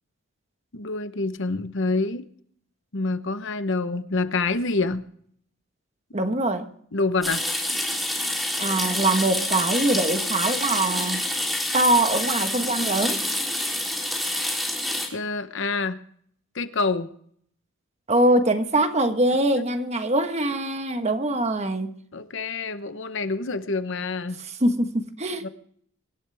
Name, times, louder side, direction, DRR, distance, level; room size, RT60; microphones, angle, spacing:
voice 1, 0.7-2.3 2.9-5.0 6.9-7.4 15.1-16.0 16.5-17.1 19.8-19.9 22.1-24.4 25.4-25.5, left 3 dB, 60° left, 1.0 m, -27 dB
voice 2, 6.1-6.7 8.6-11.2 11.7-13.2 18.1-21.9 24.6-25.5, right 1 dB, 30° right, 1.4 m, -23 dB
sound 1, 7.2-15.1, left 1 dB, ahead, 3.5 m, -27 dB
24.5 x 12.0 x 3.5 m
head